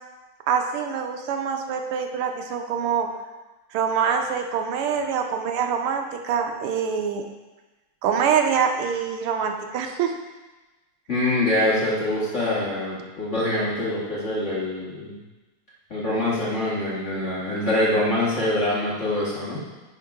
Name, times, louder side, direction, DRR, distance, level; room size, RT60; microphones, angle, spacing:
voice 1, 0.5-3.1 3.7-7.3 8.0-10.1, right 7 dB, 90° right, 4 dB, 1.6 m, -25 dB
voice 2, 11.1-15.1 15.9-19.6, left 1 dB, 35° left, -8 dB, 1.8 m, -24 dB
9.2 x 3.7 x 4.7 m, 1.2 s
omnidirectional pair, 2.4 m